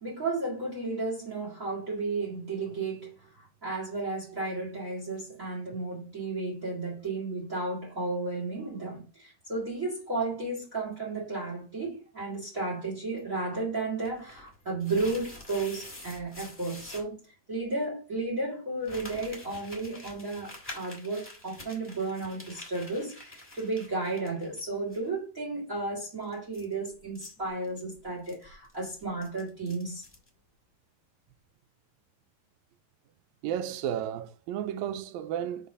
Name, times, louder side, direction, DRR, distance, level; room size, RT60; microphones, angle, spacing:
voice 1, 0.0-17.2 17.5-30.0, right 3 dB, 30° right, 1.9 m, -33 dB
sound 1, 14.0-17.1 18.8-24.6 24.9-25.0 26.2-30.3, left 2 dB, 5° left, 1.2 m, -47 dB
voice 2, 33.4-35.7, right 10 dB, 80° right, 1.8 m, -33 dB
5.2 x 4.2 x 4.9 m
omnidirectional pair, 3.6 m